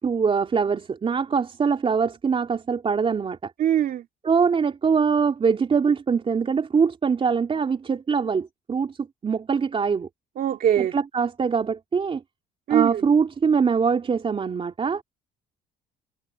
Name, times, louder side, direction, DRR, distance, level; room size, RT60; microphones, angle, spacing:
voice 1, 0.0-3.5 4.2-9.0 9.2-10.1 10.8-12.2 12.7-15.0, right 5 dB, 35° right, 3.7 m, -23 dB
voice 2, 3.6-4.0 10.4-10.9 12.7-13.0, right 10 dB, 60° right, 2.6 m, -21 dB
cardioid pair, 110°, 17 cm